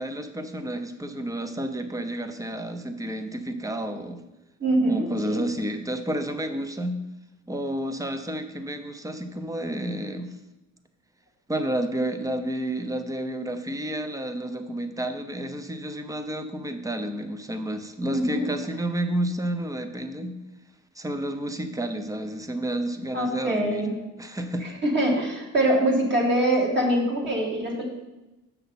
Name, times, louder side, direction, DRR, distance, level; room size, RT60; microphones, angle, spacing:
voice 1, 0.0-4.2 4.9-7.0 7.5-10.3 11.5-20.4 21.0-23.9 24.2-24.7, right 1 dB, 10° right, 8 dB, 0.7 m, -30 dB
voice 2, 4.6-5.4 18.1-18.5 23.1-23.9 24.8-27.8, right 1 dB, 35° right, -2 dB, 2.2 m, -24 dB
6.7 x 5.7 x 4.2 m, 0.99 s
cardioid pair, 90°, 30 cm